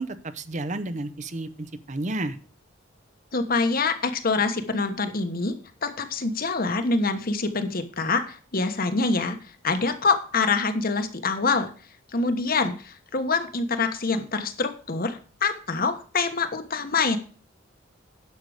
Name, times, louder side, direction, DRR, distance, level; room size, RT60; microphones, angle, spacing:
voice 1, 0.0-2.4, right 2 dB, 40° right, 12 dB, 0.8 m, -31 dB
voice 2, 3.3-5.6 5.8-9.4 9.6-11.7 12.1-17.2, left 4 dB, 50° left, 8 dB, 1.2 m, -25 dB
10.5 x 6.7 x 4.9 m, 0.40 s
head